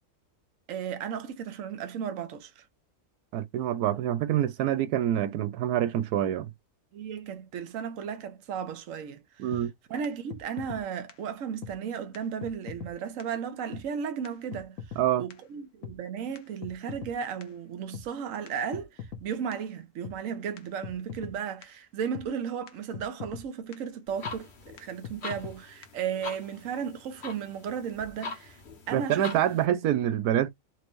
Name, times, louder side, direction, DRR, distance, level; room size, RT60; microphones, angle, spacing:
voice 1, 0.7-2.6 6.9-9.6 9.9-14.8 15.2-28.6 28.9-29.2, right 7 dB, 65° right, 1.2 m, -35 dB
voice 2, 3.3-6.5 9.4-9.7 15.0-15.2 28.9-30.5, right 11 dB, 85° right, 1.1 m, -26 dB
sound 1, 9.5-9.6 10.0-10.1 10.3-10.8 11.1-11.2 11.6-11.7 12.1-12.2 12.4-12.9 13.2-13.3 13.7-13.8 14.2-14.3 14.5-15.0 15.3-15.4 15.8-15.9 16.4-17.1 17.4-17.5 17.9-18.1 18.5-18.6 18.7-19.2 19.5-19.6 20.0-20.2 20.6-20.7 20.8-21.3 21.6-21.7 22.1-22.3 22.7-22.8 22.9-23.4 23.7-23.8 24.3-24.4 24.8-24.9 25.0-25.6 25.8-25.9, left 7 dB, 80° left, 1.5 m, -40 dB
sound 2, 24.1-29.7, left 4 dB, 45° left, 1.3 m, -43 dB
4.5 x 3.0 x 2.5 m
omnidirectional pair, 1.6 m